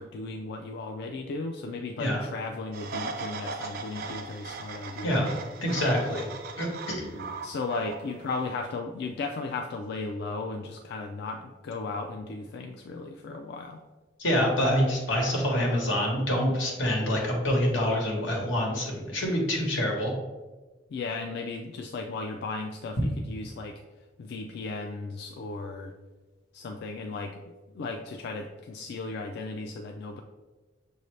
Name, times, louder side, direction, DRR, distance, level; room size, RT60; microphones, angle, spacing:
voice 1, 0.0-5.3 7.4-13.8 20.9-23.8 24.2-25.9 26.5-27.4 27.7-30.2, left 3 dB, 60° left, 3 dB, 0.3 m, -35 dB
sound 1, 2.7-8.4, right 4 dB, 50° right, 0.4 m, -39 dB
voice 2, 5.6-6.2 6.6-7.2 14.2-20.1, equal, 85° left, -1 dB, 1.3 m, -26 dB
6.2 x 2.7 x 3.2 m, 1.2 s
head